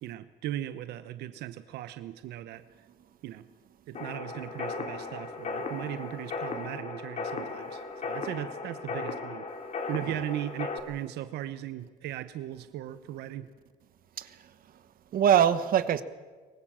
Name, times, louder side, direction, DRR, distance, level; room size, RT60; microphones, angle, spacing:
voice 1, 0.0-2.9 3.2-3.5 3.9-9.5 9.9-13.5, right 12 dB, 80° right, 0.9 m, -38 dB
sound 1, 3.9-10.8, left 4 dB, 45° left, 2.8 m, -36 dB
voice 2, 14.2-16.0, right 9 dB, 60° right, 1.3 m, -25 dB
24.0 x 19.0 x 7.5 m
cardioid pair, 110°, 17 cm